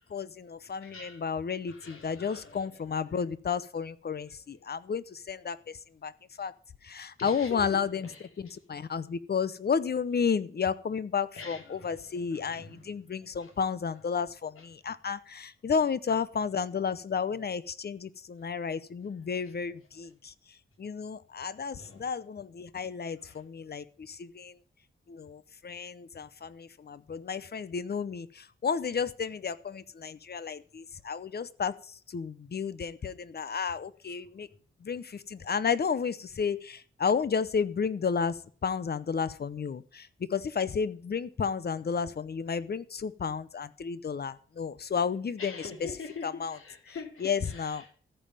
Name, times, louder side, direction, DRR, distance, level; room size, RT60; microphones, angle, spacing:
voice 1, 0.1-5.6 6.0-6.1 6.4-6.5 6.8-8.1 8.4-20.3 20.8-24.5 25.1-31.7 32.1-34.5 34.8-38.3 38.6-45.7 46.2-46.6 46.9-47.0 47.2-47.8, left 6 dB, 50° left, 0.8 m, -32 dB
voice 2, 0.8-1.3 1.7-2.8 4.5-4.6 7.2-8.6 11.3-12.9 13.2-13.5 14.6-14.7 19.4-19.5 21.8-22.1 23.2-23.4 45.4-47.9, left 4 dB, 90° left, 3.1 m, -45 dB
14.5 x 5.6 x 8.8 m
wide cardioid pair, 120°, 21 cm